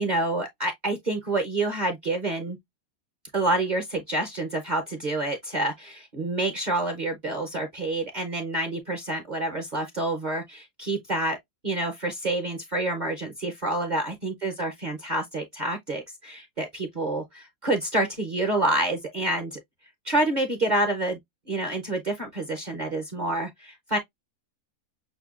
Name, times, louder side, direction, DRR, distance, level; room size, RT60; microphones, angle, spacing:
voice 1, 0.0-2.6 3.3-11.4 11.6-19.6 20.0-21.2 21.5-24.0, right 2 dB, 40° right, 0.7 m, -28 dB
6.4 x 2.3 x 2.4 m
omnidirectional pair, 1.7 m